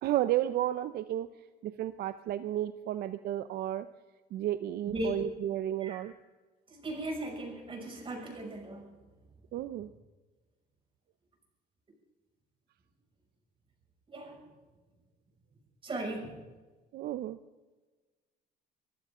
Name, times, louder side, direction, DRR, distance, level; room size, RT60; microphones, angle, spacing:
voice 1, 0.0-1.3 1.6-3.9 4.3-6.1 9.5-9.9 16.9-17.4, right 13 dB, 70° right, 12 dB, 0.6 m, -32 dB
voice 2, 6.7-8.9 14.1-14.5 15.8-16.3, right 1 dB, 30° right, 1 dB, 6.4 m, -37 dB
24.0 x 15.0 x 3.8 m, 1.3 s
cardioid pair, 110°, 17 cm